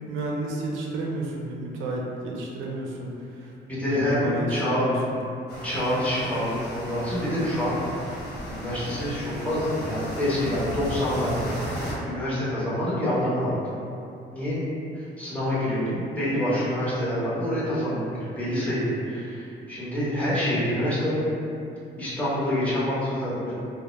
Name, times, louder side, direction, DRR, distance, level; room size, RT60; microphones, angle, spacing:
voice 1, 0.1-3.5 3.9-5.2, right 1 dB, 85° right, -2 dB, 0.5 m, -31 dB
voice 2, 3.7-4.9 5.6-7.8 8.5-13.6 14.3-14.6 14.9-21.2 22.0-23.5, left 1 dB, 5° left, -11 dB, 1.0 m, -27 dB
sound 1, 5.5-11.9, equal, 50° left, 0.8 m, -35 dB
2.1 x 2.1 x 2.9 m, 2.6 s
cardioid pair, 90°, 20 cm